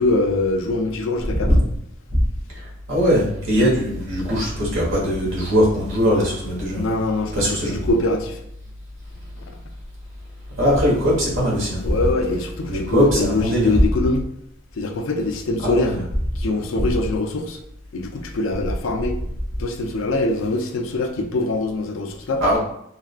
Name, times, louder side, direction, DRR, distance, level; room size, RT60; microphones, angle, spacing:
voice 1, 0.0-1.6 6.7-8.4 11.8-14.2 14.7-16.0 16.4-17.6 17.9-19.2 19.6-22.6, left 2 dB, 75° left, 5 dB, 0.4 m, -23 dB
voice 2, 2.9-6.8 7.3-7.8 10.6-11.8 12.7-13.8 15.6-16.0 16.8-16.9 22.4-22.6, equal, 75° right, -4 dB, 1.2 m, -20 dB
3.4 x 2.2 x 2.3 m, 0.75 s
head